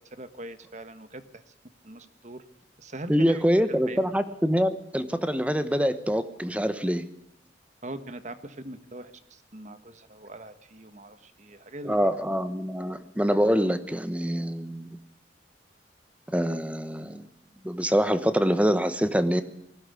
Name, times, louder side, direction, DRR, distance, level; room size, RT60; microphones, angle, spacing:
voice 1, 0.2-1.4 1.8-2.4 2.8-3.4 3.7-4.0 7.8-12.0, right 1 dB, 40° right, 11 dB, 1.5 m, -41 dB
voice 2, 3.1-7.1 11.8-15.0 16.3-17.3 17.6-19.4, equal, 5° right, 11 dB, 1.1 m, -25 dB
20.0 x 15.5 x 8.4 m, 0.76 s
head